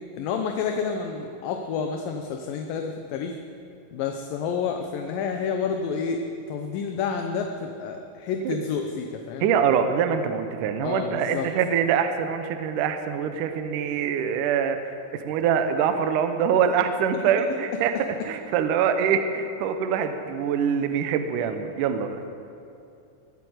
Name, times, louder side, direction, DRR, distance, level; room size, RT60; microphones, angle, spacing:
voice 1, 0.1-3.4 3.9-6.2 6.5-9.5 10.8-11.5, left 6 dB, 80° left, 4 dB, 2.5 m, -29 dB
voice 2, 9.4-14.8 15.1-22.3, right 7 dB, 75° right, 8 dB, 2.2 m, -24 dB
22.0 x 8.2 x 8.0 m, 2.6 s
omnidirectional pair, 4.2 m